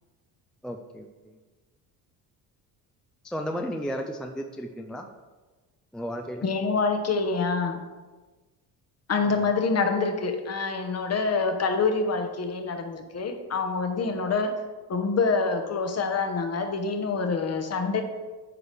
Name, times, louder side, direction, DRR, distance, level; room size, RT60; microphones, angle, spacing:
voice 1, 0.6-1.4 3.2-5.1 5.9-6.5 9.3-9.5, equal, ahead, 5 dB, 0.4 m, -34 dB
voice 2, 6.4-7.8 9.1-14.5 14.9-18.0, left 4 dB, 40° left, 6 dB, 1.0 m, -26 dB
8.6 x 4.8 x 3.4 m, 1.3 s
cardioid pair, 85°, 40 cm